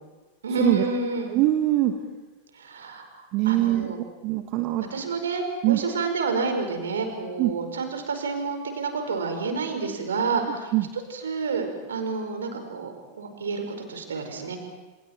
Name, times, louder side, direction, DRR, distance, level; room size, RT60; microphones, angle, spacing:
voice 1, 0.4-1.4 2.6-3.1 3.4-4.0 4.9-14.6, right 4 dB, 65° right, 6 dB, 4.8 m, -29 dB
voice 2, 1.3-1.9 3.3-3.9 4.2-4.9 5.6-5.8 7.4-7.5 10.5-10.8, right 15 dB, 40° right, 5 dB, 1.7 m, -22 dB
30.0 x 29.0 x 4.5 m, 1.3 s
figure-of-eight pair, 90°, 0 cm